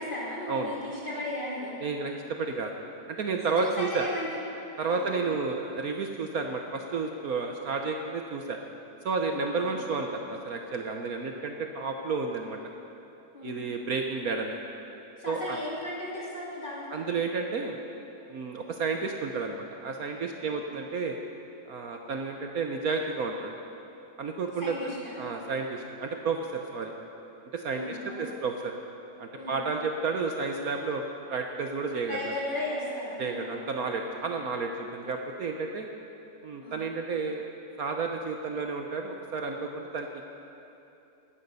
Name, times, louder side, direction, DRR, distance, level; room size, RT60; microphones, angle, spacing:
voice 1, 0.0-1.7 3.6-4.3 4.9-5.1 9.3-9.7 13.3-13.7 15.2-17.0 20.4-20.8 24.6-25.2 27.7-28.4 29.4-29.6 32.1-33.4 36.6-36.8, left 1 dB, 30° left, -6 dB, 3.3 m, -36 dB
voice 2, 1.8-2.7 3.2-4.0 4.8-8.6 9.0-12.6 13.4-14.6 15.3-15.6 16.9-17.8 18.3-21.2 21.7-23.5 24.2-24.7 25.2-26.9 27.5-28.7 29.2-32.2 33.2-35.9 36.4-37.5 37.8-40.3, right 4 dB, 60° right, 3 dB, 1.2 m, -31 dB
17.0 x 12.0 x 5.5 m, 2.8 s
omnidirectional pair, 1.8 m